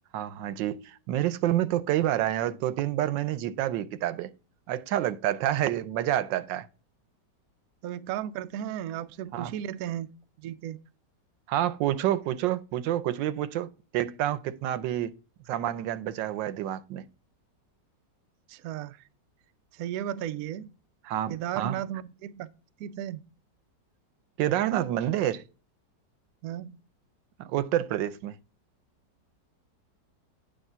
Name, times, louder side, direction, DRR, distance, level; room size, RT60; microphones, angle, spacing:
voice 1, 0.1-4.3 4.7-6.7 9.3-9.5 11.5-13.7 13.9-15.1 15.5-17.0 21.0-21.8 24.4-25.4 27.4-28.3, right 12 dB, 90° right, 1.3 m, -28 dB
voice 2, 7.8-10.1 10.4-10.8 18.5-19.0 19.7-20.7 21.3-22.5 22.8-23.2 26.4-26.8, right 11 dB, 70° right, 0.9 m, -35 dB
9.0 x 3.4 x 5.5 m
omnidirectional pair, 1.9 m